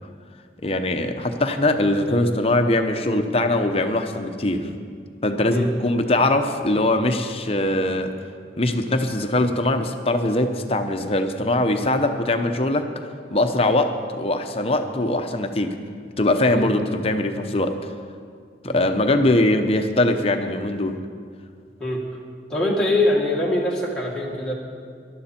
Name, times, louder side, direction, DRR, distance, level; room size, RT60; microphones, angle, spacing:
voice 1, 0.6-4.8 5.2-8.1 8.6-12.9 13.3-15.7 16.2-17.7 18.6-21.0, left 1 dB, 35° left, 6 dB, 0.8 m, -21 dB
voice 2, 22.5-24.5, left 1 dB, 5° left, -5 dB, 1.8 m, -23 dB
18.5 x 12.0 x 4.4 m, 2.1 s
head